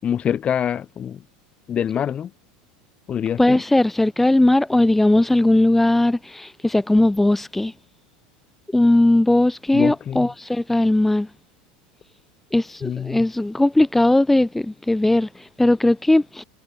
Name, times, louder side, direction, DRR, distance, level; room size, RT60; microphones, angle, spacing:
voice 1, 0.0-1.2 1.7-2.3 3.1-3.6 9.7-10.3 12.8-13.2, left 9 dB, 30° left, 4.8 m, -25 dB
voice 2, 3.4-7.7 8.7-11.3 12.5-16.4, left 1 dB, 5° left, 1.9 m, -18 dB
supercardioid pair, 115°, 4 cm